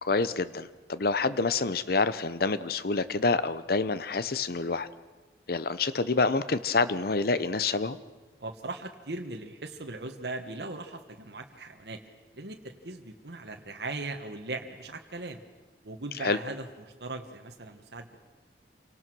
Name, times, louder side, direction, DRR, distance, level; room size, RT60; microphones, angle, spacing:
voice 1, 0.0-4.9 5.5-8.0 16.2-16.4, left 3 dB, 60° left, 15 dB, 0.8 m, -27 dB
voice 2, 8.4-12.0 12.3-15.4 15.8-18.2, right 2 dB, 65° right, 4 dB, 1.5 m, -39 dB
28.0 x 18.5 x 6.3 m, 1.3 s
head